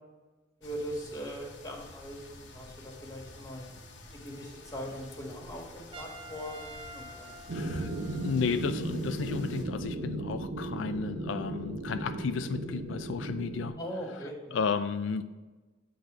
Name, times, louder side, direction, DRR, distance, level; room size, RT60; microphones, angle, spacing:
sound 1, 0.6-9.6, left 1 dB, 70° left, 1.0 m, -49 dB
voice 1, 0.6-3.7 4.2-7.3 13.8-14.6, equal, 20° left, -1 dB, 1.7 m, -40 dB
Trumpet, 5.9-8.6, right 2 dB, 30° right, 0.5 m, -48 dB
voice 2, 7.5-13.7 14.5-15.2, left 5 dB, 85° left, 10 dB, 0.4 m, -33 dB
sound 2, 7.5-13.7, right 2 dB, 80° right, 0.8 m, -36 dB
8.8 x 3.9 x 6.2 m, 1.2 s
head